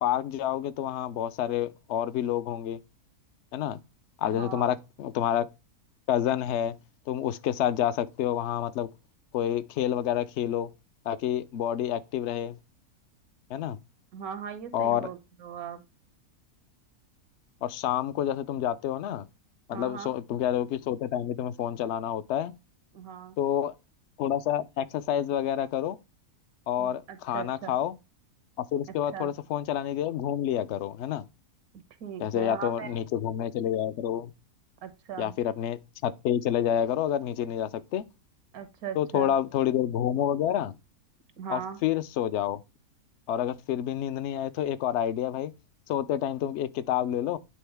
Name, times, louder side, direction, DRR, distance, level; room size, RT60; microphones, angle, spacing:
voice 1, 0.0-2.8 3.5-3.8 4.2-5.5 6.1-6.8 7.1-8.9 9.3-10.7 11.1-12.6 13.5-13.8 14.7-15.1 17.6-19.2 19.7-22.5 23.4-23.7 24.2-26.0 26.7-27.9 28.6-31.2 32.2-34.3 35.2-38.0 39.0-40.8 41.5-42.6 43.3-45.5 45.9-47.4, left 10 dB, 65° left, 0.7 m, -28 dB
voice 2, 4.3-4.6 14.1-15.8 19.7-20.1 22.9-23.4 26.8-27.7 29.1-29.3 32.0-32.9 34.8-35.3 38.5-39.3 41.4-41.8, right 8 dB, 85° right, 1.4 m, -39 dB
9.2 x 3.7 x 3.3 m
omnidirectional pair, 1.5 m